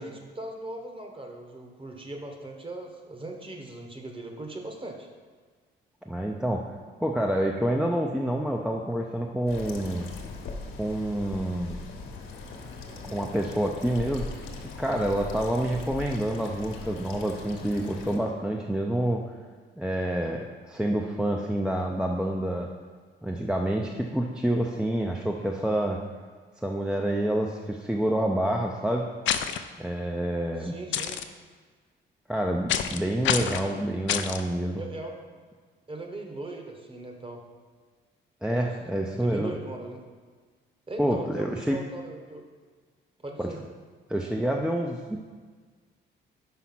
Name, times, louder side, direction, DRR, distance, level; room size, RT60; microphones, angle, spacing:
voice 1, 0.0-5.1 30.6-31.2 34.8-35.1 35.9-37.4 38.5-38.8 39.1-40.0 40.9-42.5 43.2-43.6, right 2 dB, 25° right, 3 dB, 1.2 m, -39 dB
voice 2, 6.1-6.7 7.0-10.1 10.8-11.8 13.0-14.5 14.8-19.2 19.8-22.7 23.2-26.0 26.6-29.1 29.8-30.7 32.3-34.8 38.4-39.5 41.0-41.8 43.4-43.5 44.1-45.2, right 1 dB, 5° right, 1 dB, 0.5 m, -28 dB
sound 1, 9.5-18.2, left 3 dB, 85° left, 1.1 m, -40 dB
sound 2, 29.3-29.6 30.9-31.2 32.7-33.0 33.2-33.6 34.1-34.4, left 9 dB, 70° left, 0.5 m, -26 dB
5.7 x 4.8 x 5.9 m, 1.5 s
cardioid pair, 90°, 20 cm